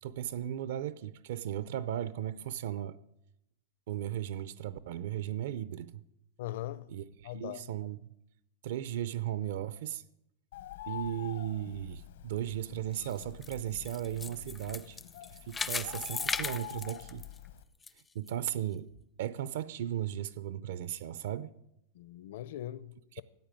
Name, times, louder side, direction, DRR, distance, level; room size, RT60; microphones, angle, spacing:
voice 1, 0.0-3.0 3.9-6.0 6.9-8.1 8.6-10.0 10.9-15.0 15.4-17.2 18.1-18.9 19.2-21.5 23.1-23.2, right 11 dB, 65° right, 0.6 m, -36 dB
voice 2, 6.4-6.9 7.2-7.6 21.9-23.2, left 13 dB, 60° left, 0.7 m, -40 dB
Bird, 10.5-17.6, left 13 dB, 75° left, 1.2 m, -46 dB
sound 1, 12.9-17.9 18.3-18.4 19.0-19.1, left 4 dB, 10° left, 0.4 m, -38 dB
15.0 x 9.1 x 9.0 m
supercardioid pair, 170°, 0 cm